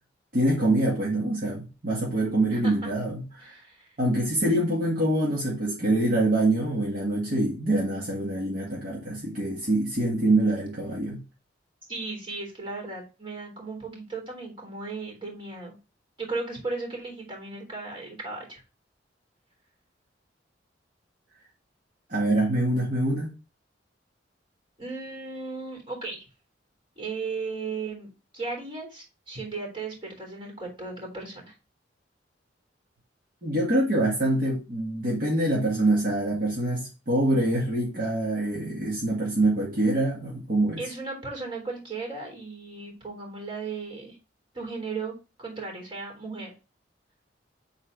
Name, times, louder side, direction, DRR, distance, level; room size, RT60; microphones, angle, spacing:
voice 1, 0.3-3.5 4.0-11.2 22.1-23.3 33.4-40.8, right 1 dB, 50° right, 2.1 m, -25 dB
voice 2, 2.5-2.9 3.4-3.9 11.9-15.8 16.2-18.6 24.8-26.2 27.0-31.5 40.8-44.2 44.5-46.5, right 3 dB, 30° right, 3.6 m, -36 dB
8.1 x 4.1 x 4.0 m
head